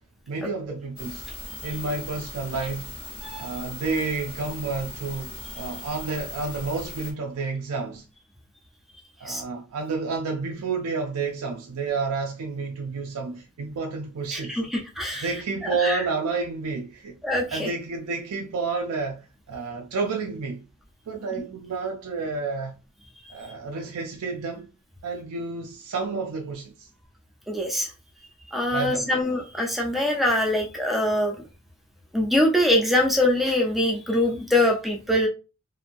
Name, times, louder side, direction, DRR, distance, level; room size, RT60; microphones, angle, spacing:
voice 1, 0.3-1.2 1.6-2.9 3.4-8.1 9.2-14.6 15.2-17.2 17.5-20.6 21.1-22.7 23.3-24.7 25.0-26.9 28.7-29.2, right 4 dB, 80° right, 0.4 m, -30 dB
sound 1, 1.0-7.1, left 2 dB, 25° left, 0.9 m, -39 dB
voice 2, 14.3-15.2 15.8-16.0 17.2-17.7 27.5-27.9 28.5-31.4 32.1-35.3, left 1 dB, ahead, 0.6 m, -23 dB
2.9 x 2.6 x 2.5 m
head